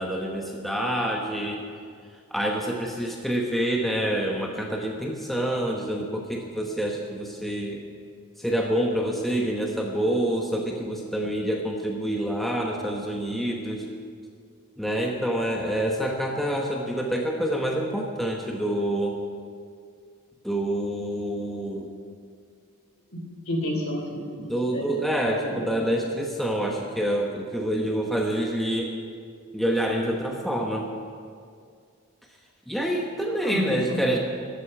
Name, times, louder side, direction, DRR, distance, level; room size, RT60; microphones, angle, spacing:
voice 1, 0.0-1.6 2.3-7.8 8.4-13.9 14.8-19.2 20.4-21.9 24.4-28.9 29.5-30.9 32.7-34.2, right 1 dB, ahead, -1 dB, 1.0 m, -27 dB
voice 2, 23.1-24.2 24.7-24.9 25.3-25.6 33.4-34.0, left 1 dB, 65° left, 0 dB, 3.5 m, -30 dB
14.0 x 8.2 x 10.0 m, 2.1 s
head